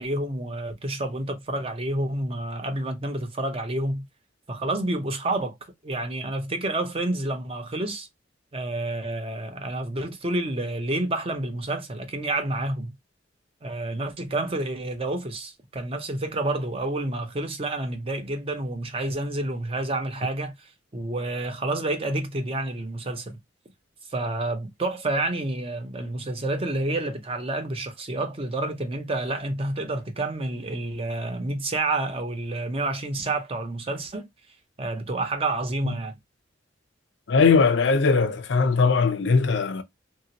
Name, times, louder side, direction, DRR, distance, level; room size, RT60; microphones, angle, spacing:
voice 1, 0.0-4.1 4.5-8.1 8.5-12.9 13.6-23.4 24.1-34.3 34.8-36.2, right 2 dB, 30° right, 0.6 m, -29 dB
voice 2, 37.3-39.8, left 4 dB, 65° left, 0.5 m, -20 dB
2.9 x 2.8 x 2.8 m
head